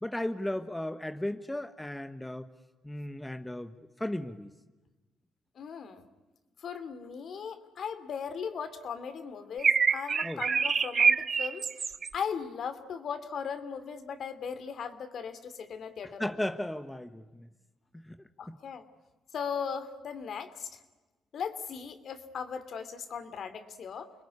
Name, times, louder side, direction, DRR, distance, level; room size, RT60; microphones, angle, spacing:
voice 1, 0.0-2.5 2.8-4.5 10.2-10.4 16.2-17.5 18.0-18.1, left 1 dB, 10° left, 9 dB, 1.3 m, -35 dB
voice 2, 5.6-6.0 6.6-16.3 18.4-18.8 19.3-20.7 21.3-24.1, left 6 dB, 60° left, 10 dB, 2.8 m, -38 dB
sound 1, 9.6-12.1, right 6 dB, 45° right, 1.0 m, -26 dB
29.5 x 20.5 x 9.8 m, 1.2 s
cardioid pair, 90°, 0 cm